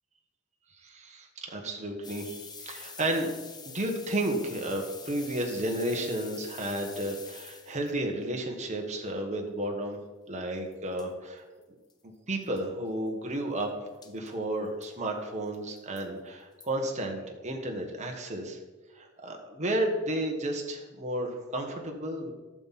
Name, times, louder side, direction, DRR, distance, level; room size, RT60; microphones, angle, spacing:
voice 1, 0.8-3.3 3.7-10.0 10.3-11.4 12.3-13.8 14.0-18.6 18.9-22.3, right 1 dB, 35° right, 2 dB, 1.4 m, -32 dB
sound 1, 2.0-7.9 10.7-10.8 11.0-11.1 11.6-11.7 11.9-12.0 12.4-12.6 14.0-14.3 14.8-14.9 15.5-16.0 16.6-16.7, left 5 dB, 20° left, 0.8 m, -46 dB
11.5 x 7.4 x 4.2 m, 1.2 s
head